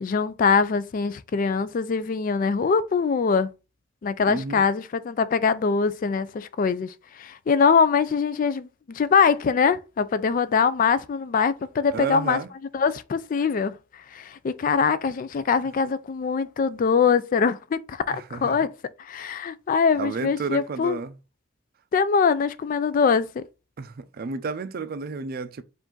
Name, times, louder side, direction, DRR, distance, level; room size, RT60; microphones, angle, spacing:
voice 1, 0.0-3.5 4.0-12.4 12.7-18.7 19.0-21.0 21.9-23.4, left 5 dB, 45° left, 0.3 m, -23 dB
voice 2, 4.3-4.6 11.9-12.5 18.1-18.6 20.0-21.1 23.8-25.6, right 4 dB, 50° right, 0.4 m, -32 dB
4.8 x 2.5 x 3.7 m
head